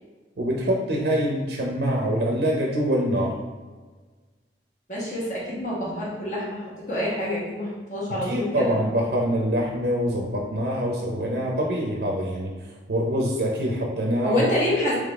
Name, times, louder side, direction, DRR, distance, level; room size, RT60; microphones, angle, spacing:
voice 1, 0.4-3.3 8.1-12.5 12.9-14.4, equal, 60° right, -2 dB, 0.5 m, -25 dB
voice 2, 4.9-8.8 14.2-14.9, left 1 dB, 45° left, -6 dB, 1.3 m, -27 dB
3.8 x 3.1 x 3.5 m, 1.4 s
head